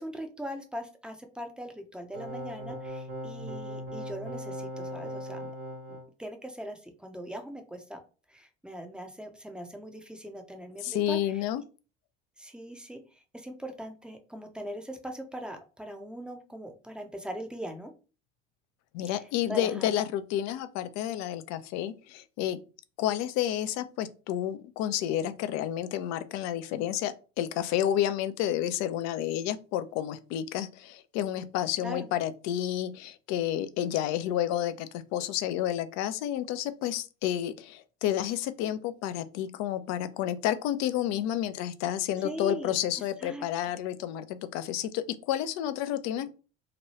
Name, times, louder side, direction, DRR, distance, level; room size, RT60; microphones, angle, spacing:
voice 1, 0.0-5.5 5.9-8.0 8.3-11.4 12.4-17.9 19.1-19.9 31.8-32.0 42.2-42.8 43.2-43.7, right 1 dB, 5° right, 0.6 m, -41 dB
sound 1, 2.1-6.0, equal, 75° right, 1.2 m, -38 dB
voice 2, 10.8-11.6 18.9-22.6 23.0-46.3, left 11 dB, 55° left, 0.4 m, -30 dB
2.9 x 2.2 x 3.0 m
hypercardioid pair, 70°, 33 cm